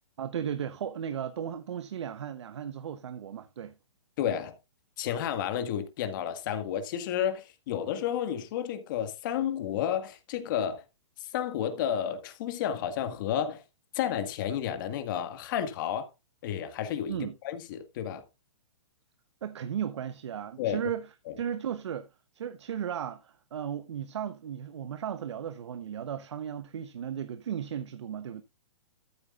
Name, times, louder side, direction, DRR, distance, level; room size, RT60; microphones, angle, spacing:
voice 1, 0.2-3.7 17.1-17.3 19.4-21.1 21.4-22.1 22.3-28.4, right 9 dB, 70° right, 0.9 m, -35 dB
voice 2, 4.2-4.6 5.0-10.8 11.2-13.6 13.9-16.1 16.4-17.2 17.4-18.2 20.6-20.8, left 9 dB, 45° left, 1.8 m, -31 dB
13.5 x 8.2 x 2.5 m
hypercardioid pair, 145°, 15 cm